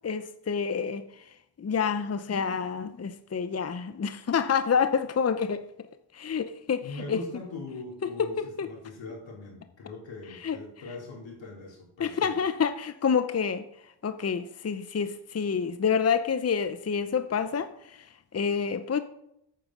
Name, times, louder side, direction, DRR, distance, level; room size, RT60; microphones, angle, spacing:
voice 1, 0.0-5.6 6.1-7.3 8.2-8.7 10.3-10.6 12.0-19.0, left 6 dB, 35° left, 0.7 m, -28 dB
voice 2, 6.8-12.4, left 2 dB, 85° left, 4.4 m, -41 dB
8.8 x 8.8 x 6.3 m
cardioid pair, 70°, 44 cm